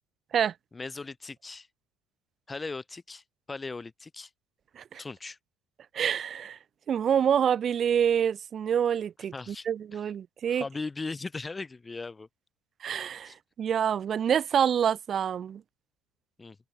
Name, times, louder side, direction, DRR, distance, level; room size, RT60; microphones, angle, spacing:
voice 1, 0.7-1.7 2.5-4.3 5.0-5.4 9.3-9.7 9.9-10.1 10.5-12.3 13.2-13.3 16.4-16.6, left 3 dB, 20° left, 6.8 m, -38 dB
voice 2, 5.9-6.6 6.9-10.6 12.8-13.3 13.6-15.6, right 8 dB, 45° right, 4.4 m, -27 dB
open air
hypercardioid pair, 75°, 0 cm